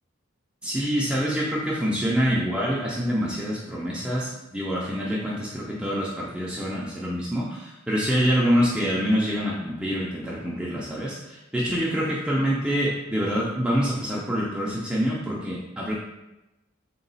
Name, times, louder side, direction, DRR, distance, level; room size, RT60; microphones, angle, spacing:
voice 1, 0.6-15.9, equal, 5° right, -6 dB, 0.4 m, -26 dB
3.9 x 2.3 x 4.0 m, 0.99 s
head